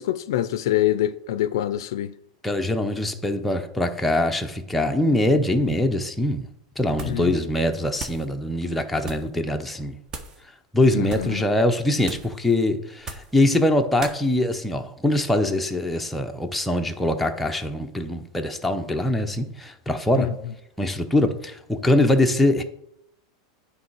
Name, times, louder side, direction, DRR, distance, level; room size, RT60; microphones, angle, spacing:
voice 1, 0.0-2.1 7.0-7.3 10.9-11.4 20.1-20.3, left 13 dB, 75° left, 0.4 m, -25 dB
voice 2, 2.4-6.5 6.8-9.9 10.7-20.3 20.8-22.6, left 1 dB, 5° left, 0.7 m, -23 dB
sound 1, 6.9-7.3 7.6-8.3 9.0-9.3 10.1-10.4 11.0-11.4 12.0-12.4 13.0-13.4 14.0-14.2, right 3 dB, 25° right, 1.0 m, -37 dB
9.3 x 3.2 x 4.6 m
supercardioid pair, 135°, 2 cm